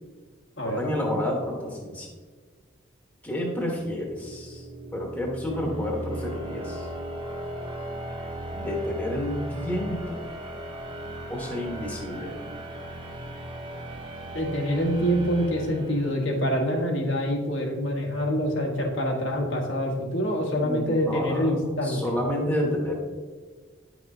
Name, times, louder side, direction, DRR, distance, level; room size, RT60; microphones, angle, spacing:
voice 1, 0.6-2.1 3.2-4.7 4.9-6.9 8.5-10.2 11.3-12.3 20.5-21.5 21.8-22.9, left 1 dB, 5° left, -2 dB, 1.2 m, -30 dB
sound 1, 3.7-16.5, right 1 dB, 25° right, 0.9 m, -37 dB
voice 2, 14.3-22.0, equal, 70° left, -1 dB, 1.3 m, -26 dB
9.5 x 6.0 x 2.7 m, 1.4 s
head